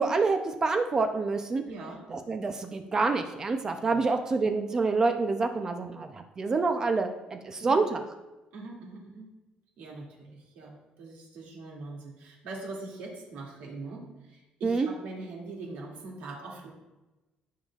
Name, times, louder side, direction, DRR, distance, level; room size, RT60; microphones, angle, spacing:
voice 1, 0.0-1.6 2.1-8.0 14.6-14.9, right 4 dB, 20° right, 6 dB, 0.5 m, -27 dB
voice 2, 1.6-2.0 3.9-4.1 7.6-7.8 8.5-9.3 9.8-14.0 14.3-16.7, right 3 dB, 85° right, -2 dB, 2.4 m, -42 dB
15.0 x 5.6 x 2.4 m, 1.1 s
cardioid pair, 180°, 3 cm